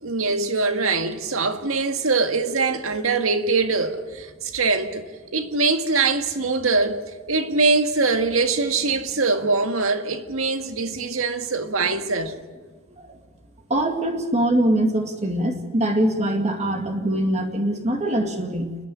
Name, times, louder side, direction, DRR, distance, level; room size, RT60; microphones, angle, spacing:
voice 1, 0.0-5.1 5.3-12.4, right 3 dB, 85° right, 1.8 m, -23 dB
voice 2, 13.7-18.8, right 1 dB, 30° right, 2.1 m, -23 dB
30.0 x 10.5 x 9.8 m
head